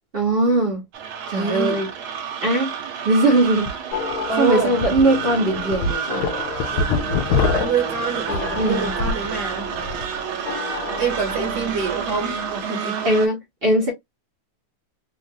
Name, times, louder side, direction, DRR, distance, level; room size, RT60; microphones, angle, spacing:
voice 1, 0.1-0.8 1.3-1.9 2.4-2.7 3.0-4.0 4.4-6.3 8.6-8.9 11.4-11.5 13.0-13.9, right 1 dB, 40° right, 0.8 m, -20 dB
sound 1, 0.9-13.3, right 7 dB, 75° right, 1.6 m, -29 dB
voice 2, 1.4-1.8 4.3-4.8 7.4-9.7 11.0-13.0, right 5 dB, 60° right, 1.4 m, -26 dB
sound 2, 3.6-3.7 4.1-4.2 4.8-5.0 5.5-9.3 9.6-10.1, left 4 dB, 80° left, 1.4 m, -24 dB
sound 3, 3.9-12.6, left 6 dB, 60° left, 1.0 m, -34 dB
3.5 x 2.5 x 2.6 m
omnidirectional pair, 2.3 m